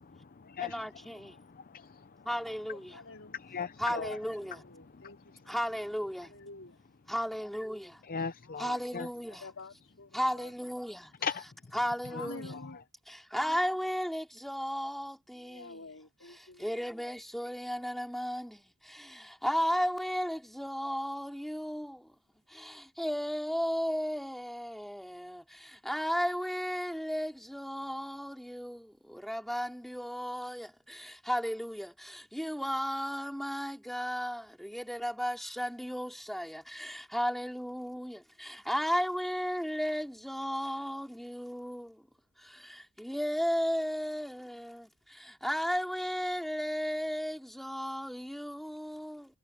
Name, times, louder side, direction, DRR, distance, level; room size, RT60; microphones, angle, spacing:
voice 1, 0.6-1.3 2.3-2.8 3.8-4.6 5.5-6.3 7.1-7.9 8.6-9.4 10.1-11.0 11.7-12.5 13.3-15.7 16.6-18.6 19.4-22.0 23.0-25.4 25.8-28.8 29.1-30.7 31.3-31.9 32.3-41.9 43.0-44.8 45.4-49.3, equal, ahead, 3.3 m, -34 dB
voice 2, 1.3-1.8 3.3-4.2 5.0-5.1 8.0-9.1 11.2-11.5 12.1-12.2, left 6 dB, 40° left, 0.6 m, -37 dB
voice 3, 2.9-3.4 4.5-5.5 6.2-6.8 8.4-8.8 9.2-10.5 12.1-12.9 15.3-16.9, left 3 dB, 65° left, 4.8 m, -49 dB
head